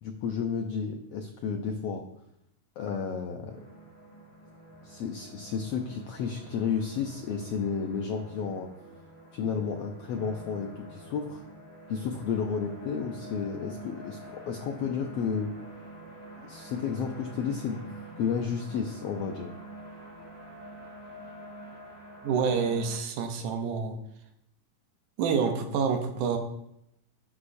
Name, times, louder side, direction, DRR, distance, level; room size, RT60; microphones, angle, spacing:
voice 1, 0.0-2.0 2.8-3.6 4.8-8.7 9.3-11.4 11.9-15.5 16.4-19.5, left 6 dB, 80° left, 4 dB, 1.4 m, -32 dB
sound 1, 3.5-23.0, right 1 dB, 10° left, 2.2 m, -47 dB
voice 2, 22.2-24.0 25.2-26.4, right 6 dB, 75° right, 6 dB, 2.4 m, -27 dB
11.5 x 9.7 x 2.7 m, 0.79 s
omnidirectional pair, 3.7 m